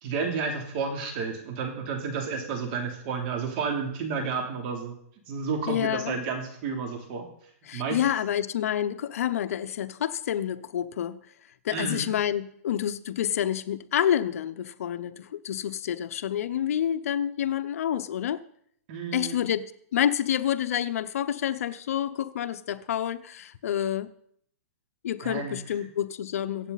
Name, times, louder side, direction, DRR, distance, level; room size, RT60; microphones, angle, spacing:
voice 1, 0.0-4.9 5.3-7.2 7.7-8.0 11.7-12.1 18.9-19.5 25.2-25.6, right 5 dB, 40° right, 3.1 m, -31 dB
voice 2, 5.7-6.1 7.7-11.2 11.6-18.4 19.1-24.1 25.0-26.7, left 10 dB, 65° left, 0.8 m, -28 dB
24.0 x 8.2 x 4.1 m
hypercardioid pair, 155°, 8 cm